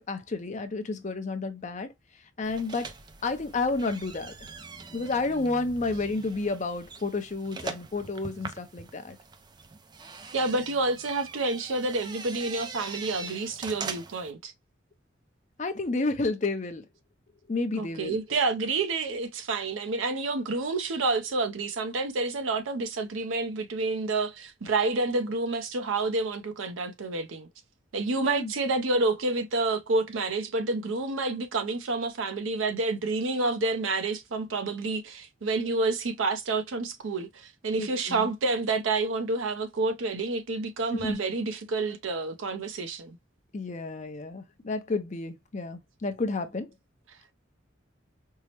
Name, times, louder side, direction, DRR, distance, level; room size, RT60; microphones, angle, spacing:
voice 1, 0.0-1.9 2.4-2.9 3.2-4.3 4.9-9.2 15.6-16.8 17.5-18.2 28.2-28.5 37.8-38.3 41.0-41.2 43.5-46.7, left 3 dB, 35° left, 0.5 m, -31 dB
sound 1, 2.4-14.3, right 4 dB, 20° right, 0.3 m, -42 dB
voice 2, 10.3-14.5 17.8-27.5 27.9-43.2, right 3 dB, 80° right, 0.6 m, -29 dB
4.6 x 2.0 x 2.8 m
head